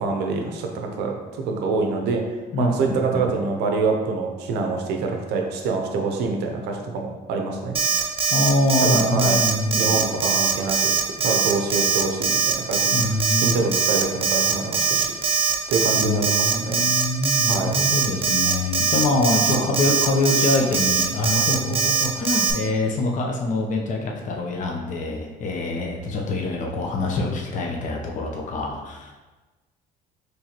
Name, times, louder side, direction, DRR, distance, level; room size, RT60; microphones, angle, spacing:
voice 1, 0.0-2.2 2.6-7.8 8.8-9.4 9.8-10.9 11.2-15.1 15.7-16.8 17.5-17.7 19.5-19.7, right 4 dB, 85° right, 3 dB, 0.6 m, -26 dB
voice 2, 2.5-3.3 8.3-10.1 12.9-13.6 15.9-29.1, left 2 dB, 50° left, 0 dB, 0.7 m, -25 dB
Alarm, 7.7-22.5, right 5 dB, 35° right, 0.5 m, -21 dB
4.5 x 3.2 x 2.9 m, 1.2 s
cardioid pair, 110°, 17 cm